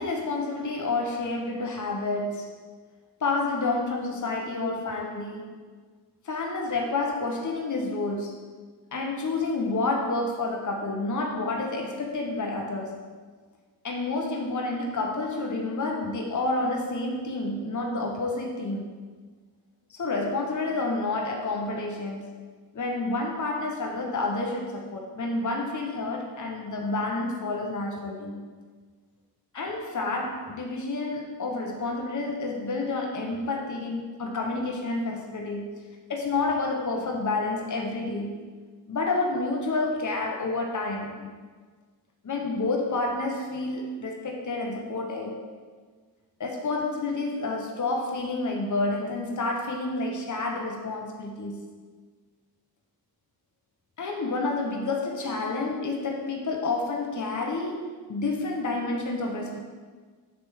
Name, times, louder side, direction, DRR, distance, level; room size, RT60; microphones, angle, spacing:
voice 1, 0.0-2.6 3.2-5.6 6.2-8.5 8.9-13.0 13.8-19.0 19.9-22.3 22.7-28.5 29.5-35.8 36.1-38.5 38.9-41.3 42.2-45.4 46.4-51.7 54.0-59.6, left 3 dB, 50° left, 1 dB, 0.9 m, -29 dB
7.8 x 3.4 x 6.3 m, 1.5 s
wide cardioid pair, 80°, 38 cm